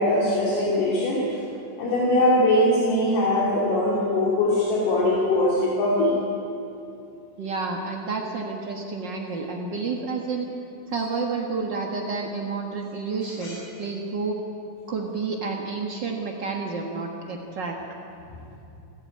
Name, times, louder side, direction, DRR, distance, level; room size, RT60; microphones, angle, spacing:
voice 1, 0.0-1.4 1.8-6.1 13.4-13.5, left 1 dB, 75° left, -5 dB, 4.6 m, -21 dB
voice 2, 7.4-10.5 10.9-14.4 14.9-17.8, right 4 dB, 70° right, 1 dB, 1.0 m, -30 dB
29.0 x 13.0 x 8.7 m, 2.7 s
omnidirectional pair, 4.6 m